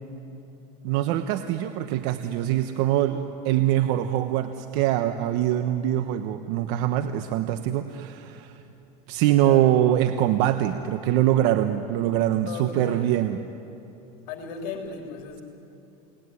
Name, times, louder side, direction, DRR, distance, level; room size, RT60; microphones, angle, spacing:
voice 1, 0.8-8.6 9.1-13.4, right 12 dB, 65° right, 8 dB, 1.2 m, -23 dB
voice 2, 9.3-9.7 12.4-13.2 14.3-15.4, left 5 dB, 70° left, 2 dB, 3.3 m, -36 dB
29.5 x 19.5 x 9.8 m, 2.9 s
supercardioid pair, 115°, 19 cm